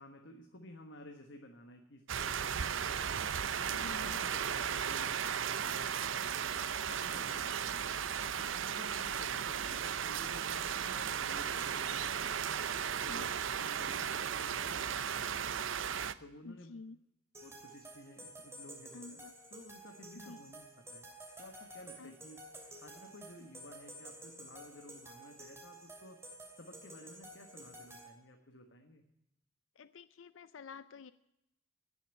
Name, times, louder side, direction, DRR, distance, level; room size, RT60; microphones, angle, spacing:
voice 1, 0.0-3.0 3.6-6.5 6.9-7.8 8.4-12.4 13.0-15.7 16.2-16.8 17.4-19.2 19.5-21.1 21.4-22.4 22.8-26.2 26.5-29.0, left 1 dB, 65° left, 4 dB, 1.4 m, -54 dB
sound 1, 2.1-16.1, right 8 dB, 85° right, 0.6 m, -35 dB
voice 2, 3.7-4.2 6.9-7.3 8.2-8.6 13.0-13.3 16.4-17.0 18.9-19.3 20.3-20.4 22.0-22.1 29.8-31.1, left 4 dB, 85° left, 14 dB, 0.5 m, -50 dB
Liquid, 6.1-7.1 7.6-9.1 9.6-10.8 11.5-12.3 12.9-14.5 15.3-16.0, left 1 dB, 10° left, 4.1 m, -67 dB
sound 2, 17.3-28.1, right 1 dB, 15° right, 2.9 m, -52 dB
16.5 x 7.1 x 9.0 m, 0.85 s
head